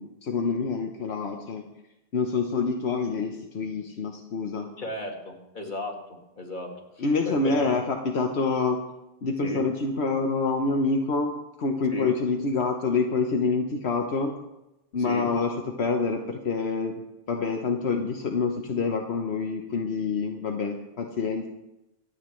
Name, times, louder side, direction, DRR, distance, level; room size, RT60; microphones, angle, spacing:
voice 1, 0.0-1.6 2.1-4.7 7.0-8.8 9.2-11.3 11.6-14.3 14.9-16.9 17.3-21.5, left 4 dB, 75° left, 2 dB, 1.2 m, -27 dB
voice 2, 4.8-6.0 6.4-6.7 7.3-7.8 9.4-9.6 11.9-12.2 15.0-15.3, left 1 dB, 45° left, 1 dB, 2.1 m, -33 dB
25.0 x 9.2 x 3.2 m, 0.94 s
omnidirectional pair, 1.1 m